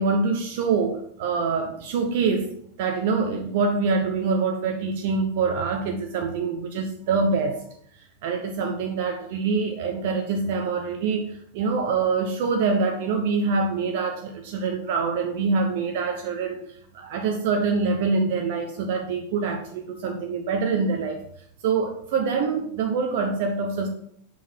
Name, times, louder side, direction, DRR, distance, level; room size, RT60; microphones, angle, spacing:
voice 1, 0.0-2.5 2.8-7.6 8.2-16.6 16.9-21.2 21.6-23.9, right 4 dB, 50° right, 4 dB, 0.9 m, -25 dB
5.6 x 4.6 x 5.8 m, 0.66 s
figure-of-eight pair, 90°, 0 cm